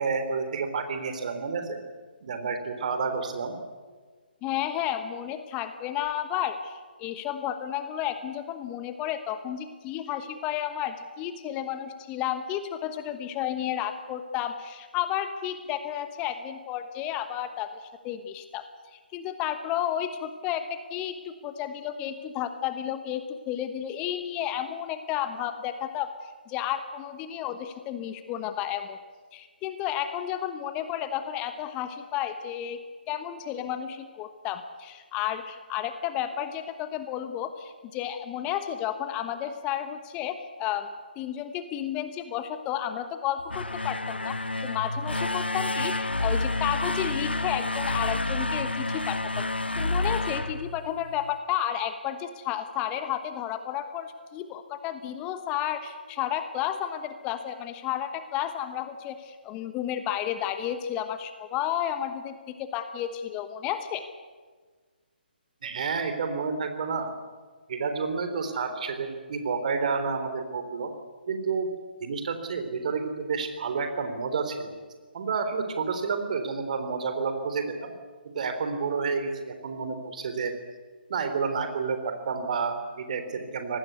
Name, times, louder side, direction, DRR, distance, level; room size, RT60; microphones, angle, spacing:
voice 1, 0.0-1.8 2.2-3.6 65.6-67.1 67.7-70.9 71.3-71.7 72.0-74.7 75.1-77.9 78.2-80.5 81.1-83.8, right 5 dB, 45° right, 7 dB, 3.6 m, -30 dB
voice 2, 4.4-18.6 18.9-29.0 29.3-32.8 33.1-49.5 49.8-64.0, left 10 dB, 20° left, 9 dB, 1.2 m, -32 dB
sound 1, 43.4-51.4, left 2 dB, 85° left, 1.0 m, -29 dB
25.0 x 19.0 x 8.3 m, 1.5 s
figure-of-eight pair, 140°, 6 cm